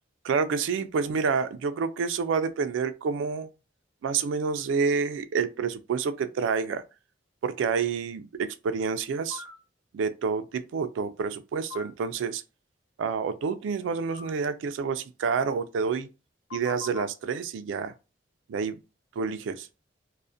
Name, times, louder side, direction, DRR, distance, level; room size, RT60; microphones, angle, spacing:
voice 1, 0.2-3.5 4.0-6.8 7.4-9.4 9.9-12.4 13.0-16.1 16.5-17.9 18.5-18.8 19.2-19.7, right 5 dB, 80° right, 0.3 m, -28 dB
sound 1, 9.3-9.5 11.7-11.9 14.1-14.3 16.5-17.0, left 8 dB, 80° left, 1.0 m, -39 dB
2.3 x 2.0 x 2.5 m
head